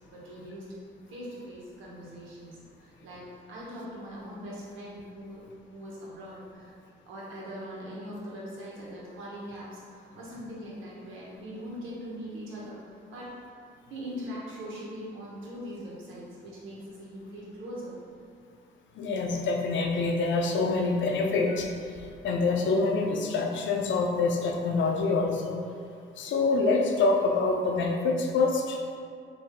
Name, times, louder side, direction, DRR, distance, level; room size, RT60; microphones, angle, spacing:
voice 1, 0.1-0.7 1.1-5.4 5.7-6.7 7.1-13.4 13.9-17.9, equal, 90° right, -6 dB, 1.2 m, -41 dB
voice 2, 19.0-25.6 26.2-28.8, left 3 dB, 70° left, 2 dB, 0.6 m, -26 dB
4.4 x 2.7 x 3.8 m, 2.3 s
cardioid pair, 90°, 20 cm